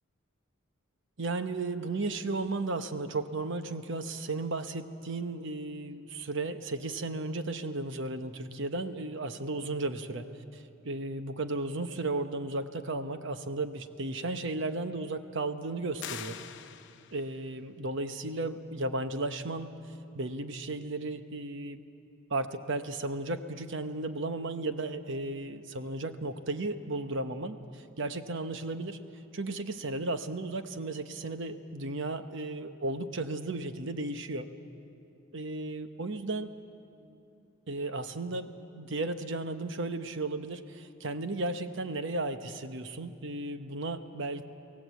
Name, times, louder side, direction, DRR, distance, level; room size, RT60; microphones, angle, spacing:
voice 1, 1.2-10.3 10.5-16.4 17.1-19.7 20.1-21.8 22.3-29.0 29.3-34.5 35.3-36.5 37.7-44.4, right 2 dB, 60° right, 9 dB, 1.0 m, -34 dB
sound 1, 16.0-17.4, left 9 dB, 60° left, 0.8 m, -43 dB
23.5 x 17.5 x 8.2 m, 2.7 s
head